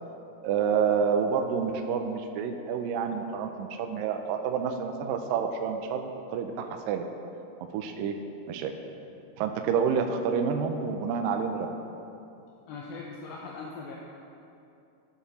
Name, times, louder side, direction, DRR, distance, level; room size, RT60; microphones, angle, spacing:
voice 1, 0.4-7.0 7.7-8.2 8.5-8.7 9.4-11.7, right 6 dB, 80° right, 5 dB, 2.1 m, -28 dB
voice 2, 12.7-14.0, left 4 dB, 75° left, -3 dB, 2.5 m, -40 dB
15.5 x 7.1 x 4.1 m, 2.8 s
omnidirectional pair, 4.5 m